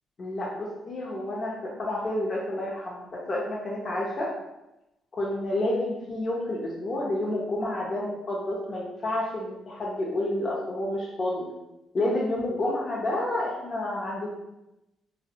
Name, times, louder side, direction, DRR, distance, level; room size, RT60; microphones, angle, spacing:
voice 1, 0.2-4.3 5.2-11.5 11.9-14.3, left 1 dB, 40° left, -4 dB, 0.5 m, -29 dB
2.5 x 2.0 x 2.8 m, 0.93 s
cardioid pair, 90°, 0 cm